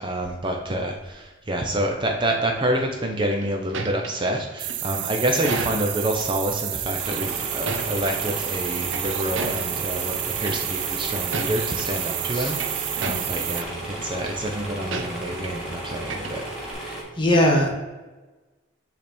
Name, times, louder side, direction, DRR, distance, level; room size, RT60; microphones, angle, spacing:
voice 1, 0.0-16.4, right 1 dB, 25° right, 2 dB, 0.6 m, -27 dB
sound 1, 3.1-6.1 7.0-8.4 8.7-9.9 10.4-10.9 11.2-11.9 12.3-13.7 14.0-14.3 14.9-15.7 15.9-16.7, right 3 dB, 80° right, 0.8 m, -33 dB
sound 2, 4.6-13.6, right 14 dB, 60° right, 0.4 m, -30 dB
sound 3, 7.0-17.0, right 1 dB, 5° right, 1.6 m, -35 dB
voice 2, 17.2-17.7, left 1 dB, 25° left, 0 dB, 1.3 m, -19 dB
7.8 x 3.5 x 4.3 m, 1.2 s
head